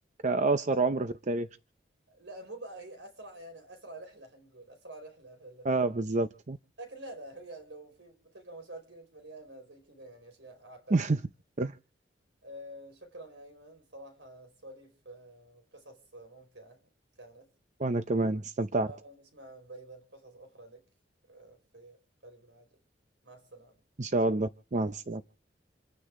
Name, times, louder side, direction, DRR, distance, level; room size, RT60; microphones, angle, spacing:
voice 1, 0.2-1.5 5.6-6.6 10.9-11.2 11.6-11.7 17.8-18.9 24.0-25.2, right 2 dB, 45° right, 0.7 m, -28 dB
voice 2, 2.1-5.7 6.8-11.1 12.4-16.8 17.2-17.5 18.9-20.8 21.3-22.8 23.2-23.8, right 1 dB, 90° right, 4.9 m, -48 dB
28.0 x 9.8 x 3.7 m
head